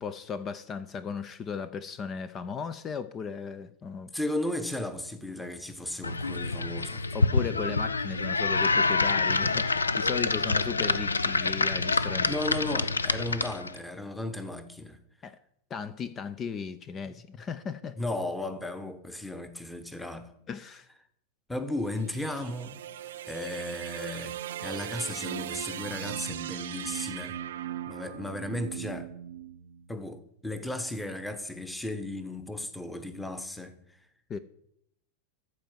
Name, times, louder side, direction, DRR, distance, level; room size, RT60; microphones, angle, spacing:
voice 1, 0.0-4.1 7.1-12.3 15.2-15.4 15.7-17.9 20.5-20.9 34.3-34.4, left 6 dB, 25° left, 0.5 m, -36 dB
voice 2, 4.1-7.0 12.3-15.0 17.0-17.2 18.0-20.3 21.5-22.8 23.3-27.4 27.9-29.1 29.9-33.8, left 1 dB, 5° left, 1.1 m, -35 dB
sound 1, 6.0-13.8, left 3 dB, 75° left, 0.5 m, -27 dB
sound 2, 21.7-30.1, right 11 dB, 60° right, 0.5 m, -38 dB
13.5 x 4.6 x 7.6 m
figure-of-eight pair, 90°, 0 cm